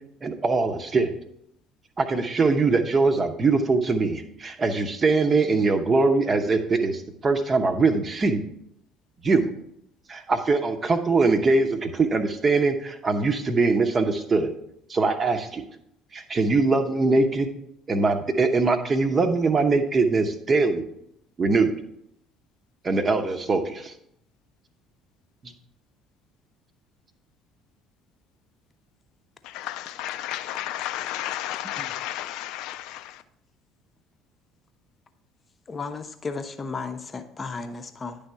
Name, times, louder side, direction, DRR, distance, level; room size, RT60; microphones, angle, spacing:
voice 1, 0.2-1.2 2.0-8.4 9.2-9.5 10.1-14.5 14.9-15.7 16.1-17.5 17.9-20.8 21.4-21.7 22.8-23.9 25.4-25.5, right 3 dB, 30° right, 8 dB, 0.9 m, -22 dB
voice 2, 29.4-33.2, left 13 dB, 60° left, 11 dB, 0.4 m, -33 dB
voice 3, 35.7-38.2, left 4 dB, 25° left, 7 dB, 0.7 m, -34 dB
10.5 x 3.5 x 5.5 m, 0.75 s
figure-of-eight pair, 55°, 0 cm